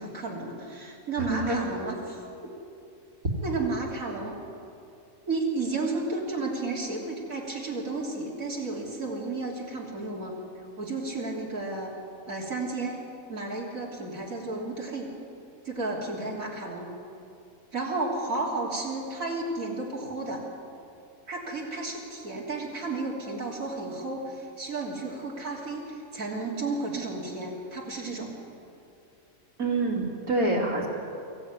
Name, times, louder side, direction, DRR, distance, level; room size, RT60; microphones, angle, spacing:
voice 1, 0.0-2.2 3.4-4.3 5.3-10.4 10.8-11.9 12.3-13.0 13.3-15.1 15.6-16.9 17.7-20.4 21.3-28.3, right 3 dB, 70° right, -4 dB, 3.8 m, -32 dB
voice 2, 1.3-1.6 29.6-30.9, right 2 dB, 90° right, -1 dB, 3.4 m, -26 dB
23.5 x 15.0 x 9.8 m, 2.6 s
omnidirectional pair, 1.5 m